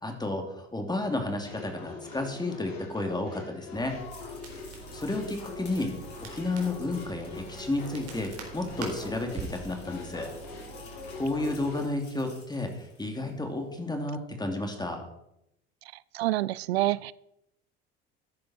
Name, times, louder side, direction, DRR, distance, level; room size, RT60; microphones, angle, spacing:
voice 1, 0.0-4.0 4.9-5.9 6.2-10.3 11.1-15.0, left 2 dB, 15° left, 3 dB, 2.9 m, -32 dB
sound 1, 1.4-11.8, left 4 dB, 80° left, 3.3 m, -43 dB
Crackle, 3.7-11.7, right 5 dB, 50° right, 4.2 m, -45 dB
sound 2, 3.9-13.4, left 3 dB, 35° left, 6.2 m, -54 dB
voice 2, 16.1-17.1, right 15 dB, 85° right, 21 dB, 0.5 m, -27 dB
14.0 x 10.5 x 4.4 m, 0.81 s
hypercardioid pair, 65°, 31 cm